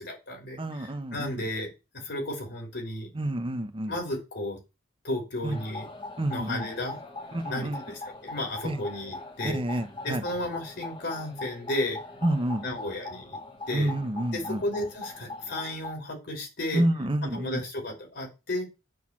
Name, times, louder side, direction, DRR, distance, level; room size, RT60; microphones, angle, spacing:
voice 1, 0.0-3.1 3.9-4.6 5.0-5.9 6.3-7.0 7.5-9.6 10.0-12.0 12.6-13.4 13.7-13.9 14.3-16.8 17.3-18.6, left 1 dB, 60° left, 3.2 m, -33 dB
voice 2, 0.6-1.4 3.1-3.9 5.4-5.6 6.2-6.7 7.3-7.8 8.6-8.8 9.4-10.2 12.2-12.6 13.7-14.6 16.7-17.6, right 1 dB, 25° right, 1.0 m, -29 dB
sound 1, 5.5-15.9, left 2 dB, 25° left, 1.7 m, -41 dB
9.4 x 4.2 x 7.3 m
head